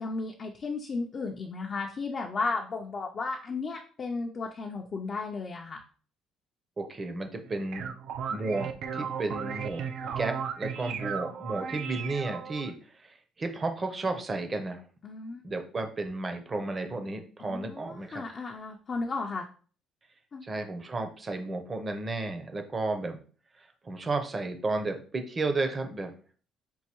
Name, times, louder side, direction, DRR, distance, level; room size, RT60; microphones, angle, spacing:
voice 1, 0.0-5.8 15.0-15.4 17.4-19.5 20.3-20.5, left 3 dB, 30° left, 1 dB, 0.5 m, -34 dB
voice 2, 6.8-7.9 8.3-9.8 10.2-14.8 15.4-18.2 20.4-23.2 23.6-26.1, right 3 dB, 25° right, 6 dB, 0.7 m, -33 dB
sound 1, 7.4-12.7, right 7 dB, 60° right, 0.5 m, -35 dB
5.4 x 2.6 x 3.0 m, 0.40 s
cardioid pair, 150°, 0 cm